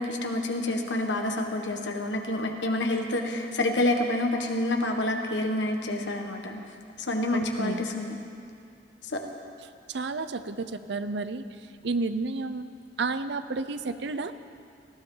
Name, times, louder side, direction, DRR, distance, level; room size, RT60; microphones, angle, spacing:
voice 1, 0.0-6.6 7.0-8.2 9.0-9.2, left 1 dB, 80° left, 3 dB, 1.5 m, -28 dB
voice 2, 7.3-7.9 9.9-11.5 11.8-12.7 13.0-14.3, right 3 dB, 70° right, 11 dB, 0.6 m, -31 dB
19.0 x 15.5 x 3.9 m, 2.3 s
head